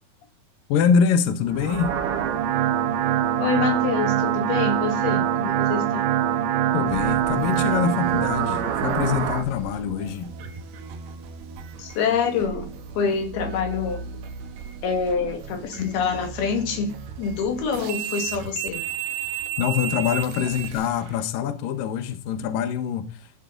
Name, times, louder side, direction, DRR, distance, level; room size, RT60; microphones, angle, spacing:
voice 1, 0.7-2.0 6.7-10.3 19.6-23.4, left 7 dB, 75° left, 2.0 m, -24 dB
sound 1, 1.5-9.4, right 10 dB, 85° right, 4.0 m, -24 dB
voice 2, 3.4-6.1 11.8-12.7 13.0-14.1 14.8-18.8, left 6 dB, 60° left, 3.6 m, -26 dB
sound 2, 6.9-21.2, right 8 dB, 65° right, 3.1 m, -36 dB
15.5 x 11.5 x 3.9 m
omnidirectional pair, 5.6 m